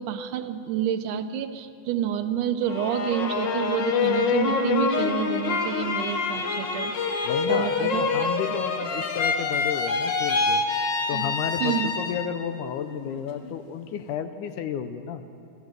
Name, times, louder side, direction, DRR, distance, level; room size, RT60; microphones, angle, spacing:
voice 1, 0.0-6.9 7.5-8.3 11.1-11.4 11.6-12.0, right 9 dB, 80° right, 9 dB, 2.3 m, -29 dB
sound 1, 2.7-12.5 12.9-13.6, left 4 dB, 60° left, 1.2 m, -26 dB
voice 2, 7.3-10.6 11.1-15.2, left 8 dB, 80° left, 9 dB, 2.2 m, -32 dB
24.0 x 14.0 x 7.6 m, 2.5 s
omnidirectional pair, 3.7 m